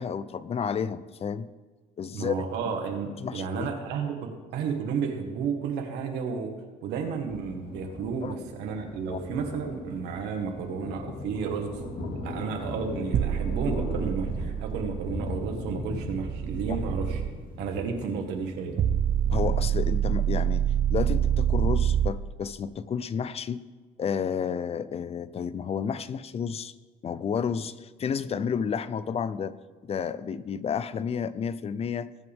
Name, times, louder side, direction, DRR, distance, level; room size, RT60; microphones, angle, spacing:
voice 1, 0.0-1.5 2.0-2.4 3.2-3.7 8.2-8.3 9.1-9.2 16.7-16.8 19.3-23.6 24.0-26.7 27.0-29.6 29.8-32.1, left 7 dB, 35° left, 16 dB, 0.5 m, -31 dB
voice 2, 2.1-6.5 6.8-11.8 12.2-17.2 17.6-18.8, right 6 dB, 90° right, 2 dB, 1.8 m, -32 dB
Thunder, 7.3-22.1, left 2 dB, 60° left, 2.3 m, -38 dB
sound 1, 13.1-17.3 18.8-22.1, right 10 dB, 50° right, 0.6 m, -27 dB
20.0 x 7.8 x 3.6 m, 1.4 s
cardioid pair, 110°, 17 cm